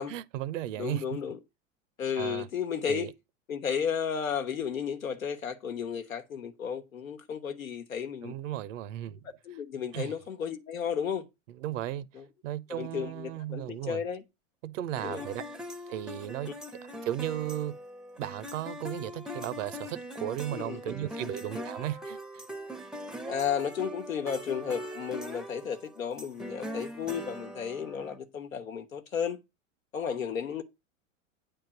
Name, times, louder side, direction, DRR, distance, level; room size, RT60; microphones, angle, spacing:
voice 1, 0.0-1.2 2.2-2.5 2.9-3.1 8.2-9.2 9.9-10.1 11.6-12.1 12.4-14.0 14.6-15.4 15.9-16.5 17.0-17.7 18.2-22.4, right 12 dB, 70° right, 0.8 m, -35 dB
voice 2, 0.8-1.4 2.0-3.1 3.5-8.3 9.4-11.3 12.1-12.2 12.7-14.2 15.0-15.3 16.2-16.5 20.5-20.8 21.2-21.7 23.3-29.4 29.9-30.6, left 7 dB, 90° left, 1.1 m, -33 dB
sound 1, 15.0-28.2, equal, ahead, 0.6 m, -41 dB
9.0 x 3.6 x 5.8 m
hypercardioid pair, 95°, 40 cm